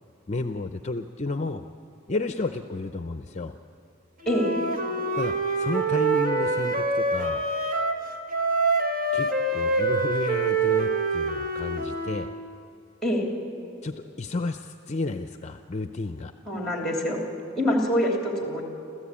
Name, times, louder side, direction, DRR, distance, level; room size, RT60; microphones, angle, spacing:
voice 1, 0.3-1.6 2.1-3.5 5.1-7.5 9.1-12.3 13.8-16.3, left 2 dB, 35° left, 8 dB, 0.6 m, -32 dB
voice 2, 4.2-4.7 13.0-13.3 16.5-17.2 17.6-18.6, equal, ahead, 0 dB, 3.2 m, -25 dB
Wind instrument woodwind instrument, 4.2-8.0 8.3-12.3, right 3 dB, 45° right, 1.5 m, -25 dB
28.0 x 14.5 x 8.6 m, 2.7 s
head